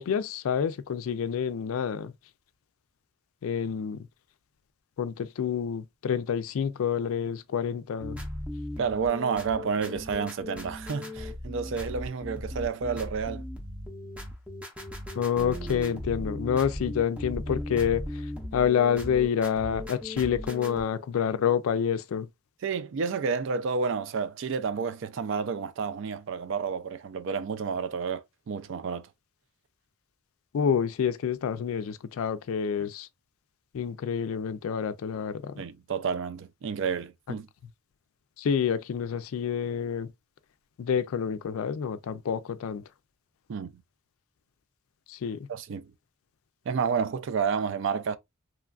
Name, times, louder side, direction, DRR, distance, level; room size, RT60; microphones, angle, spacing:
voice 1, 0.0-2.1 3.4-4.1 5.0-8.2 15.2-18.2 18.5-22.3 30.5-33.1 33.7-35.5 38.4-40.1 40.8-42.8 45.1-45.5, left 7 dB, 70° left, 0.3 m, -28 dB
sound 1, 8.0-20.8, left 1 dB, 5° right, 0.6 m, -37 dB
voice 2, 8.8-13.4 22.6-29.1 35.6-37.5 43.5-43.8 45.5-45.9 46.7-48.2, right 5 dB, 55° right, 0.3 m, -30 dB
3.0 x 2.3 x 2.3 m
head